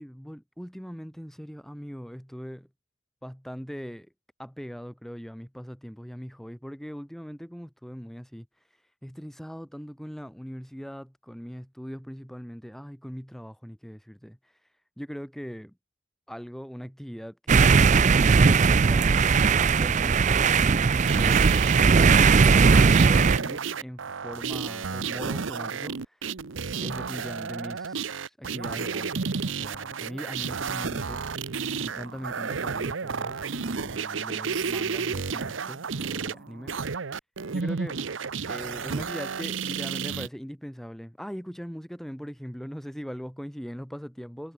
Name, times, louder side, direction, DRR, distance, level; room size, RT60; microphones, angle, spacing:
voice 1, 0.0-2.7 3.2-4.1 4.4-8.5 9.0-14.6 15.0-15.8 16.3-22.7 23.1-26.2 26.8-31.3 31.7-36.7 37.5-38.0 38.5-44.5, equal, ahead, 2.5 m, -40 dB
sound 1, 17.5-23.4, right 5 dB, 40° right, 0.4 m, -19 dB
sound 2, 21.0-40.3, right 5 dB, 75° right, 0.8 m, -32 dB
head